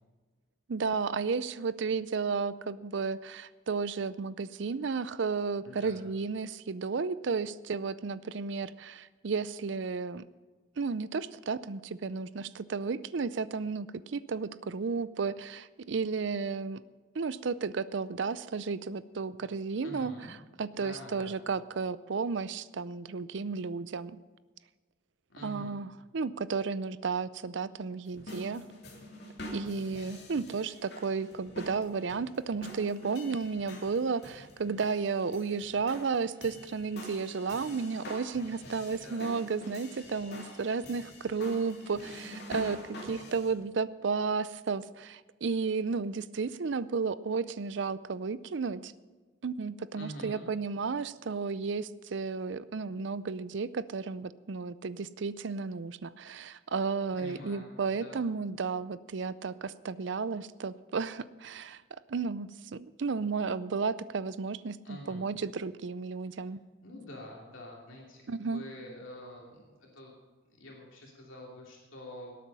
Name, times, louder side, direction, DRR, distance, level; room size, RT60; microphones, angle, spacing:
voice 1, 0.7-10.2 10.8-16.8 17.2-20.1 20.6-24.2 25.4-28.6 29.5-42.8 43.0-48.9 49.4-61.8 62.1-66.6 68.3-68.6, right 4 dB, 65° right, 17 dB, 0.5 m, -33 dB
voice 2, 5.6-6.0 19.8-20.3 20.7-21.4 25.3-25.8 38.8-39.3 49.9-50.5 57.2-58.3 64.8-65.2 66.8-70.1 70.6-72.4, left 1 dB, 75° left, -2 dB, 2.8 m, -47 dB
sound 1, 28.1-43.5, left 1 dB, 50° left, 3.0 m, -46 dB
18.5 x 8.5 x 5.5 m, 1.4 s
head